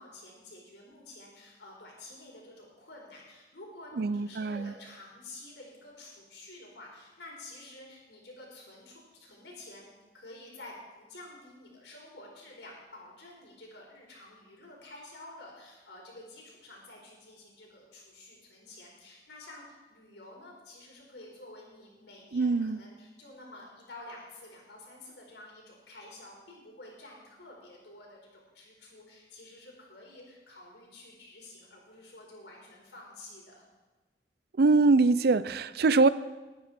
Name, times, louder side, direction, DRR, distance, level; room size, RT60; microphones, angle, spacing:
voice 1, 0.0-33.6, left 2 dB, 80° left, -2 dB, 4.6 m, -50 dB
voice 2, 4.0-4.7 22.3-22.8 34.6-36.1, right 3 dB, 60° right, 16 dB, 0.5 m, -23 dB
20.0 x 9.8 x 4.3 m, 1.2 s
head